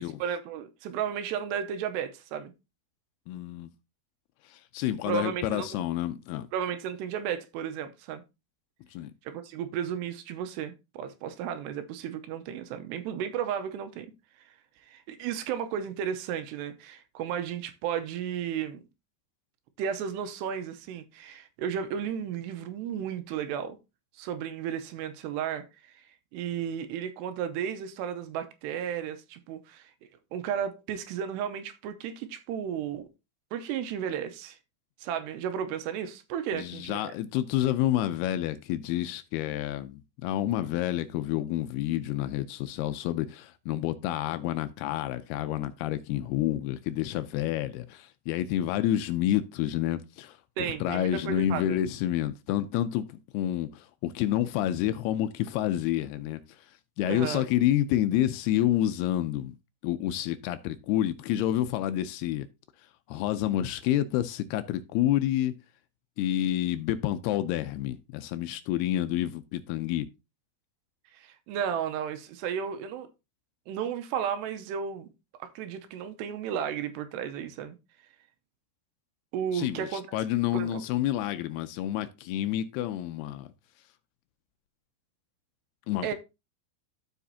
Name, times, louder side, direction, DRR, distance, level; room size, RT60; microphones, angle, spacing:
voice 1, 0.0-2.5 5.1-5.8 6.5-8.2 9.2-14.1 14.9-18.8 19.8-23.8 24.1-25.9 26.3-29.9 30.3-33.1 33.5-34.6 35.0-37.2 50.6-51.8 57.0-57.4 71.1-73.1 73.7-75.1 75.4-77.8 79.3-80.1 80.5-80.8 86.0-86.1, right 8 dB, 90° right, 2.9 m, -33 dB
voice 2, 3.3-3.7 4.5-6.5 8.9-9.1 36.5-50.4 50.7-56.7 57.0-59.6 59.8-62.5 63.1-65.5 66.2-70.1 79.5-83.5 85.9-86.1, left 12 dB, 80° left, 2.4 m, -29 dB
14.0 x 5.0 x 2.7 m
omnidirectional pair, 4.9 m